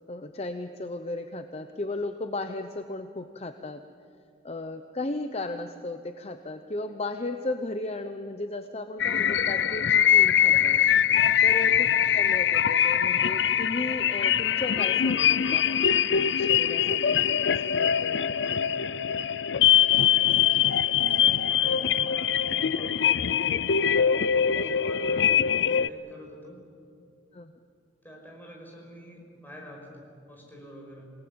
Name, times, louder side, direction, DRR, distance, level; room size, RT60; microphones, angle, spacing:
voice 1, 0.1-3.8 4.4-10.8 11.4-11.9 12.1-18.5 27.3-27.6, left 2 dB, 35° left, 7 dB, 0.8 m, -35 dB
sound 1, 9.0-25.9, left 9 dB, 80° left, 0.5 m, -23 dB
voice 2, 11.6-12.0 18.3-19.2 19.7-20.6 21.0-23.3 23.8-26.6 28.0-31.1, equal, 10° left, 0 dB, 5.8 m, -47 dB
28.0 x 18.5 x 8.7 m, 2.5 s
head